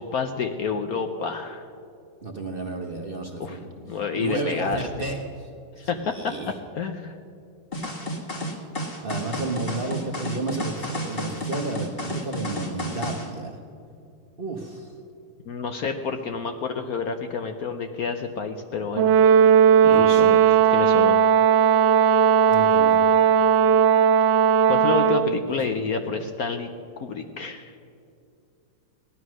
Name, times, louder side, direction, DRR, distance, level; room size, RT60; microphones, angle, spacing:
voice 1, 0.0-1.7 3.4-4.9 5.8-6.3 6.8-7.2 15.5-19.1 19.5-21.2 24.7-26.7 27.0-27.7, left 5 dB, 60° left, 6 dB, 1.0 m, -29 dB
voice 2, 2.2-3.7 4.2-5.5 5.8-6.5 9.0-13.5 14.4-14.9 19.8-20.2 22.5-23.0 25.5-25.6, right 3 dB, 35° right, 2 dB, 1.0 m, -32 dB
sound 1, 7.7-13.3, equal, 30° left, 1.8 m, -31 dB
Brass instrument, 19.0-25.4, right 8 dB, 75° right, 1.1 m, -17 dB
17.0 x 11.0 x 6.3 m, 2.5 s
omnidirectional pair, 2.1 m